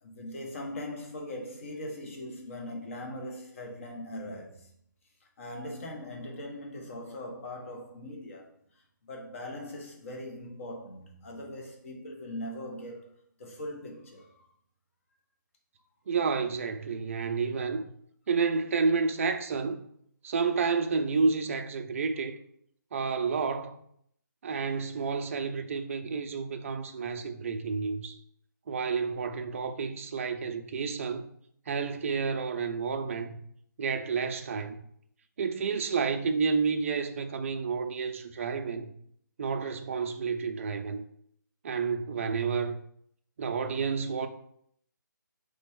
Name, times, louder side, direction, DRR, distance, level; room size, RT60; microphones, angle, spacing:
voice 1, 0.0-4.7 5.4-8.5 9.0-13.1 13.4-14.3, left 1 dB, 40° left, 1.1 m, -40 dB
voice 2, 16.1-17.9 18.3-19.8 20.2-22.4 22.9-23.8 24.4-28.2 28.7-31.3 31.7-33.4 33.8-34.8 35.4-38.9 39.4-41.0 41.6-42.7 43.4-44.3, right 5 dB, 40° right, 0.4 m, -30 dB
4.1 x 3.4 x 3.5 m
hypercardioid pair, 160°, 11 cm